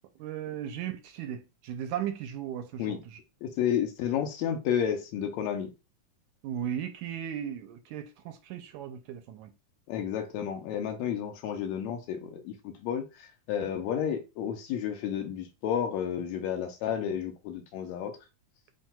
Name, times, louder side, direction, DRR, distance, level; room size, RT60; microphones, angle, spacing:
voice 1, 0.2-3.2 6.4-9.5, right 10 dB, 80° right, 1.9 m, -36 dB
voice 2, 3.4-5.7 9.9-18.1, left 9 dB, 75° left, 1.9 m, -31 dB
7.4 x 3.2 x 2.3 m
omnidirectional pair, 3.5 m